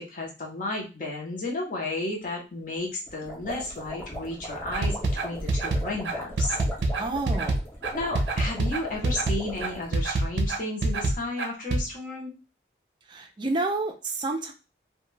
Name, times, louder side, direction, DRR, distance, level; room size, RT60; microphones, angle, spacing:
voice 1, 0.0-6.6 7.9-12.3, left 2 dB, 50° left, -1 dB, 0.8 m, -33 dB
sound 1, 3.1-9.9, equal, 15° left, 0.6 m, -39 dB
sound 2, 4.7-11.8, right 2 dB, 90° right, 0.5 m, -26 dB
voice 2, 7.0-7.6 13.1-14.5, right 2 dB, 25° right, 5 dB, 0.4 m, -29 dB
2.2 x 2.2 x 3.1 m, 0.30 s
head